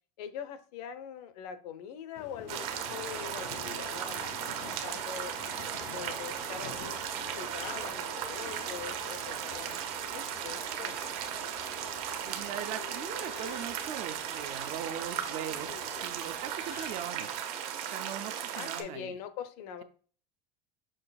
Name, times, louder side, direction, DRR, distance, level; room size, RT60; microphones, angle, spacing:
voice 1, 0.2-4.4 4.8-5.3 5.9-7.0 7.4-11.2 18.5-19.8, left 8 dB, 90° left, 11 dB, 0.7 m, -43 dB
Subway metro underground, 2.2-17.4, left 10 dB, 55° left, 0.5 m, -49 dB
sound 1, 2.5-18.8, right 9 dB, 70° right, 0.8 m, -36 dB
voice 2, 11.9-17.4 17.9-19.1, right 10 dB, 40° right, 11 dB, 0.4 m, -40 dB
6.3 x 3.2 x 2.3 m, 0.42 s
cardioid pair, 165°, 20 cm